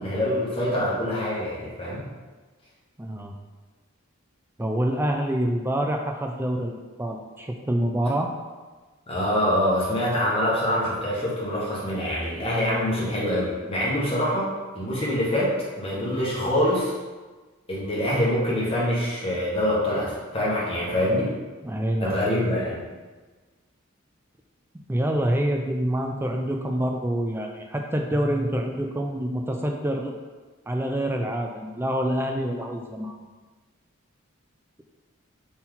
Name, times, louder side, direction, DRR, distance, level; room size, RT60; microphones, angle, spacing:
voice 1, 0.0-2.0 9.1-16.9 17.7-21.3 22.0-22.8, left 1 dB, 25° left, -6 dB, 1.5 m, -25 dB
voice 2, 3.0-3.3 4.6-8.3 21.6-22.3 24.9-30.2 30.7-33.2, right 1 dB, 10° right, 3 dB, 0.4 m, -26 dB
5.6 x 4.3 x 3.8 m, 1.3 s
head